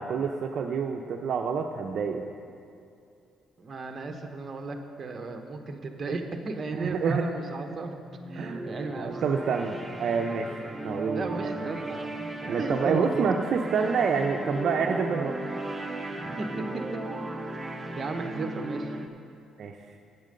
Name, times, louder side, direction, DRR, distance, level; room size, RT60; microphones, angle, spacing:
voice 1, 0.0-2.2 6.7-7.3 8.4-8.6 9.0-11.5 12.5-15.3 19.6-19.8, right 5 dB, 55° right, 3 dB, 0.5 m, -28 dB
voice 2, 3.6-8.0 8.3-9.2 11.1-12.1 12.4-13.3 16.2-16.5 18.0-18.9, right 3 dB, 35° right, 4 dB, 1.0 m, -35 dB
sound 1, 8.0-19.1, right 2 dB, 15° right, 0.7 m, -36 dB
8.9 x 8.3 x 6.5 m, 2.5 s
cardioid pair, 120°, 0 cm